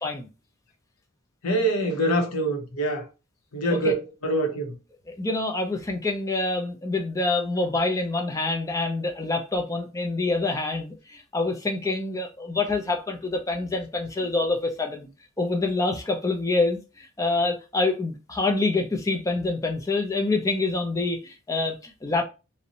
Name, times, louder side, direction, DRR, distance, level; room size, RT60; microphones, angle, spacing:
voice 1, 1.4-3.0 3.5-4.7, right 1 dB, 80° left, 0.7 m, -25 dB
voice 2, 5.2-15.1 15.4-22.2, left 3 dB, 15° left, 0.3 m, -26 dB
2.6 x 2.0 x 2.7 m
head